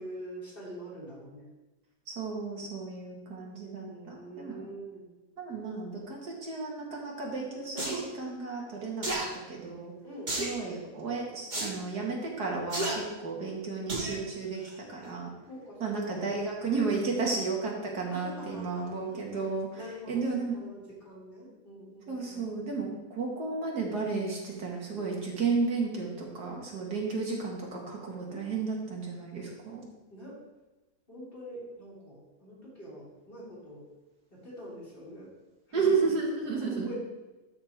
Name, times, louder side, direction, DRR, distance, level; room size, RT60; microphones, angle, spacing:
voice 1, 0.0-1.5 3.8-5.1 10.0-10.4 15.5-16.3 18.1-20.2 20.5-22.4 28.3-28.4 30.1-30.4 31.1-33.9 34.3-35.3 35.7-36.3 36.6-37.0, right 1 dB, 35° left, -8 dB, 3.6 m, -44 dB
voice 2, 2.1-4.7 5.4-9.2 9.5-9.9 10.4-14.6 14.9-15.3 15.8-19.7 20.1-20.6 22.1-29.8 35.7-36.9, right 4 dB, 75° right, -2 dB, 2.3 m, -33 dB
sound 1, 7.8-8.0 9.0-9.3 10.3-10.6 11.5-11.7 12.7-12.9 13.9-14.2 14.6-14.7, right 2 dB, 30° right, 1.8 m, -31 dB
12.5 x 4.4 x 4.6 m, 1.1 s
omnidirectional pair, 1.7 m